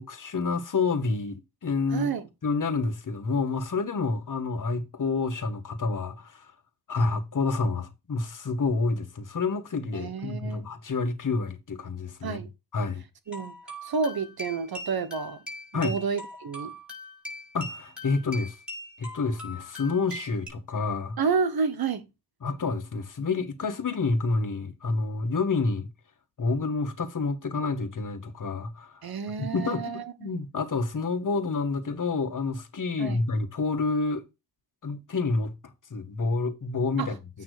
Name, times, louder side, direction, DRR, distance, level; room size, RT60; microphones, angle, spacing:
voice 1, 0.0-2.1 2.4-6.5 6.9-12.4 12.7-13.0 15.7-16.0 17.5-18.5 19.0-21.2 22.4-25.9 26.4-29.0 29.4-34.2 34.8-37.2, left 4 dB, 45° left, 1.6 m, -28 dB
voice 2, 1.9-2.3 9.9-10.7 12.2-12.5 13.3-13.6 13.8-15.4 15.7-16.7 21.2-22.1 29.0-30.3 33.0-33.2 37.0-37.1, right 5 dB, 60° right, 1.2 m, -30 dB
sound 1, 13.3-20.5, left 1 dB, 5° right, 4.8 m, -41 dB
9.0 x 3.4 x 4.9 m
cardioid pair, 60°, 42 cm